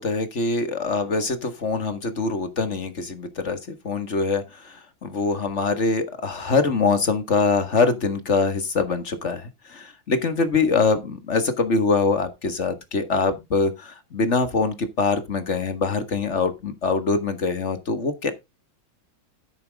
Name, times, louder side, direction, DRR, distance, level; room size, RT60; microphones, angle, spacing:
voice 1, 0.0-18.3, left 4 dB, 35° left, 1.8 m, -24 dB
10.0 x 9.2 x 3.5 m
omnidirectional pair, 2.2 m